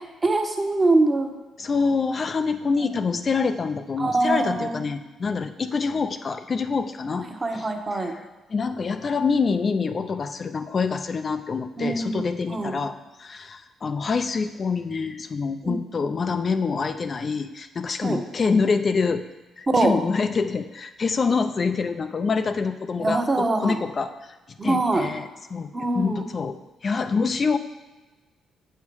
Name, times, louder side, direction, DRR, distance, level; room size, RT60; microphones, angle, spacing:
voice 1, 0.2-1.3 2.8-2.9 4.0-4.8 7.4-8.1 11.8-12.2 12.5-12.7 15.6-15.8 18.0-18.2 19.7-19.9 23.0-23.8 24.6-25.1 25.7-26.2, right 2 dB, 25° right, 4 dB, 1.1 m, -23 dB
voice 2, 1.6-8.2 8.5-19.2 19.6-24.3 24.6-25.7 25.9-27.6, left 4 dB, 40° left, 9 dB, 0.5 m, -26 dB
8.1 x 5.6 x 4.7 m, 1.2 s
cardioid pair, 90°, 0 cm